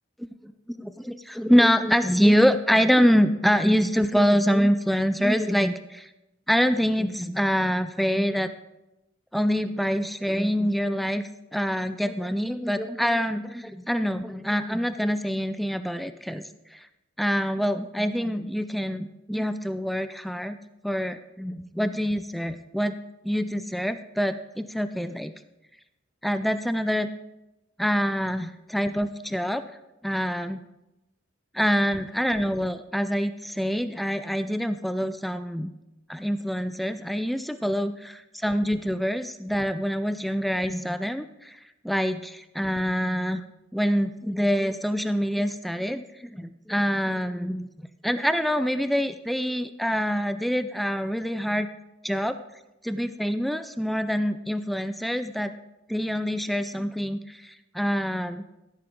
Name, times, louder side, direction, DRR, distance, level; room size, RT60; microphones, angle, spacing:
voice 1, 0.8-6.1 6.5-8.5 9.3-11.2 11.5-16.4 16.7-16.8 17.2-20.6 20.8-23.0 23.2-25.3 26.2-27.1 27.8-29.6 30.0-30.6 31.5-35.7 36.1-41.6 41.8-43.4 43.7-47.7 48.0-51.7 52.0-52.3 52.8-55.5 55.9-58.4, equal, ahead, 11 dB, 0.3 m, -25 dB
15.0 x 8.7 x 3.8 m, 0.93 s
head